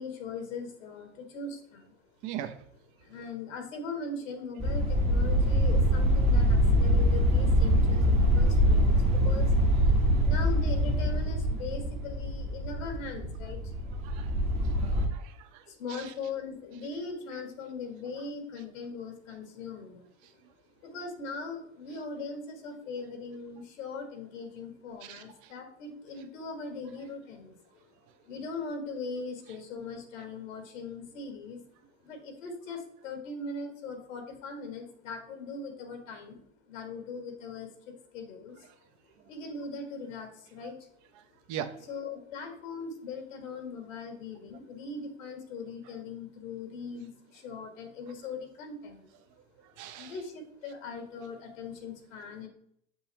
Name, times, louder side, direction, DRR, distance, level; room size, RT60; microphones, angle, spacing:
voice 1, 0.0-2.0 3.0-9.6 10.2-13.7 15.7-20.1 20.8-27.6 28.2-31.6 32.0-36.4 36.7-38.7 39.3-40.9 41.9-49.2 49.9-52.5, left 4 dB, 85° left, 4 dB, 1.8 m, -40 dB
voice 2, 2.2-2.5 14.0-14.3 14.6-15.6 15.9-16.1 25.0-25.5 41.5-41.9 49.8-50.1, right 10 dB, 50° right, 9 dB, 1.0 m, -40 dB
sound 1, 4.6-15.1, equal, 15° right, 1.0 m, -24 dB
6.8 x 5.5 x 3.0 m, 0.68 s
hypercardioid pair, 110°, 38 cm